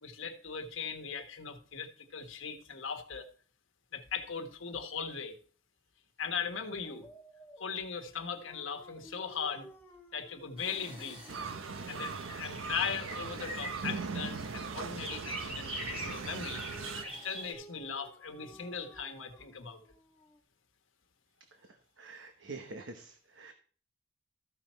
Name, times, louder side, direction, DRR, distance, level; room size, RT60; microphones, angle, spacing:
voice 1, 0.0-3.3 3.9-5.4 6.2-7.1 7.6-9.7 10.1-11.2 11.9-16.6 17.0-19.8, left 6 dB, 80° left, 5 dB, 1.4 m, -39 dB
Dog, 6.8-12.7 15.8-20.4, right 1 dB, 10° left, 1.2 m, -56 dB
sound 1, 10.6-17.5, equal, 25° right, 3.7 m, -44 dB
sound 2, 11.3-17.0, right 4 dB, 85° right, 0.6 m, -40 dB
voice 2, 21.5-23.5, right 3 dB, 65° right, 6 dB, 1.0 m, -47 dB
14.0 x 5.9 x 4.3 m, 0.43 s
head